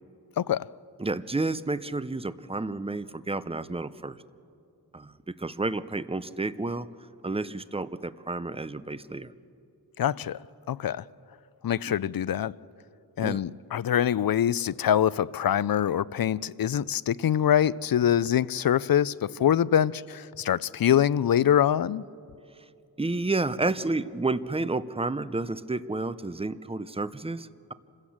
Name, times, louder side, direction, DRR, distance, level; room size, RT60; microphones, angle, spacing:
voice 1, 0.4-0.7 10.0-10.4 10.7-11.0 11.6-12.5 13.2-22.0, left 10 dB, 60° left, 0.5 m, -24 dB
voice 2, 1.0-4.2 4.9-6.9 7.2-9.3 11.9-12.1 13.2-13.4 23.0-27.7, right 3 dB, 15° right, 0.6 m, -31 dB
27.0 x 16.5 x 7.3 m
wide cardioid pair, 85°, 41 cm